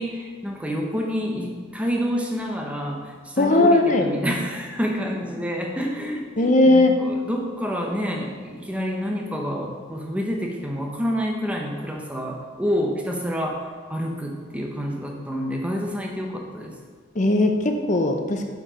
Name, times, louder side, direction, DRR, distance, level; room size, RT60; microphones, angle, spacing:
voice 1, 0.0-16.7, equal, 5° right, 0 dB, 0.8 m, -28 dB
voice 2, 3.4-4.1 6.4-6.9 17.2-18.4, left 2 dB, 35° left, 4 dB, 0.7 m, -18 dB
7.1 x 4.6 x 5.1 m, 1.6 s
head